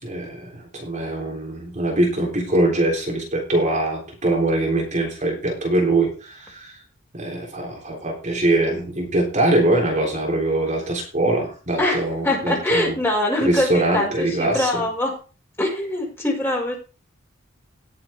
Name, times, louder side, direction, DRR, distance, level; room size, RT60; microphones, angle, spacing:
voice 1, 0.0-6.7 7.1-12.9 13.4-14.8, right 2 dB, 40° right, 0 dB, 3.5 m, -22 dB
voice 2, 11.8-15.2 15.6-16.8, left 1 dB, 10° left, -1 dB, 5.1 m, -23 dB
18.0 x 7.6 x 3.6 m, 0.35 s
head